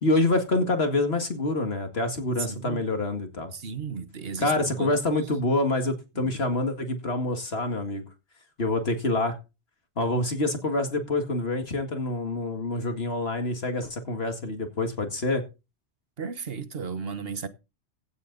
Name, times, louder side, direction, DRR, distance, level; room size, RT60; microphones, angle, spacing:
voice 1, 0.0-3.5 4.4-8.0 8.6-9.4 10.0-15.4, left 2 dB, 65° left, 2.2 m, -26 dB
voice 2, 2.5-2.8 3.5-4.9 6.1-6.3 16.2-17.5, right 5 dB, 60° right, 1.4 m, -34 dB
16.0 x 8.2 x 4.0 m
omnidirectional pair, 1.1 m